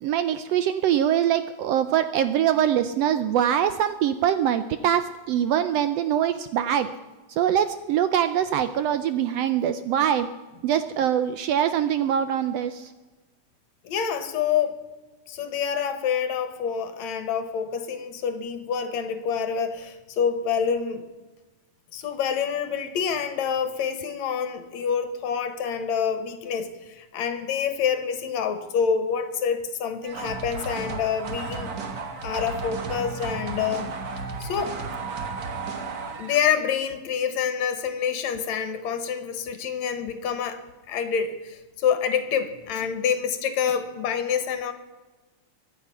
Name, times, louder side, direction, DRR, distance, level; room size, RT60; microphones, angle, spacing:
voice 1, 0.0-6.9 7.3-10.3 10.6-12.9, right 10 dB, 80° right, 11 dB, 1.5 m, -23 dB
voice 2, 13.8-14.8 15.3-21.0 21.9-31.7 32.2-33.9 34.4-34.8 36.2-44.7, left 7 dB, 75° left, 10 dB, 2.4 m, -27 dB
sound 1, 30.0-36.6, right 4 dB, 50° right, 1.2 m, -33 dB
23.0 x 8.3 x 5.7 m, 1.2 s
omnidirectional pair, 3.3 m